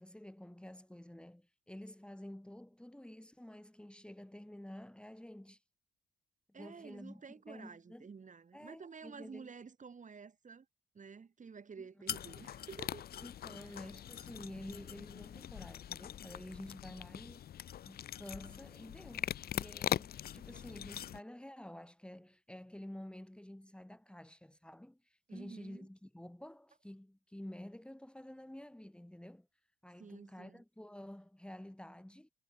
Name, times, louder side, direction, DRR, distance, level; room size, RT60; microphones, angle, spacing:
voice 1, 0.0-5.6 6.5-8.1 8.5-9.5 13.2-29.5 29.8-32.3, left 1 dB, 5° left, 3.3 m, -50 dB
voice 2, 6.5-10.7 10.9-13.1 13.6-14.0 25.3-25.9 30.0-30.6, right 5 dB, 40° right, 6.1 m, -51 dB
sound 1, 12.1-21.2, left 10 dB, 50° left, 0.5 m, -42 dB
cardioid pair, 90°, 20 cm